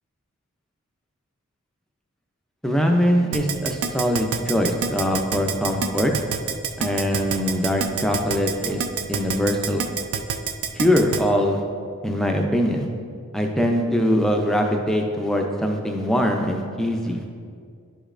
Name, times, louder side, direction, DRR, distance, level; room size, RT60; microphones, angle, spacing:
voice 1, 2.6-6.1 6.8-8.8 9.1-9.8 10.8-11.6 12.0-12.9 13.3-17.2, equal, ahead, 2 dB, 0.4 m, -22 dB
Keyboard (musical), 3.3-11.2, right 7 dB, 70° right, 0.4 m, -26 dB
10.5 x 5.1 x 2.5 m, 2.2 s
head